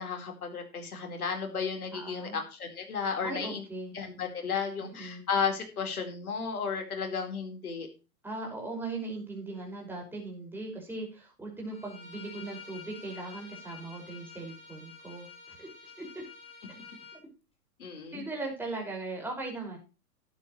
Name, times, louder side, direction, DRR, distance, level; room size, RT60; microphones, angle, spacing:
voice 1, 0.0-3.6 3.9-7.9 17.8-18.3, left 6 dB, 70° left, 4 dB, 4.5 m, -33 dB
voice 2, 1.9-2.4 3.2-4.0 4.8-5.2 8.2-15.7 16.0-16.2 18.1-19.8, right 2 dB, 5° right, -1 dB, 5.7 m, -39 dB
Bowed string instrument, 11.7-17.2, left 4 dB, 10° left, 4.0 m, -49 dB
12.5 x 10.5 x 3.2 m, 0.31 s
hypercardioid pair, 120°, 46 cm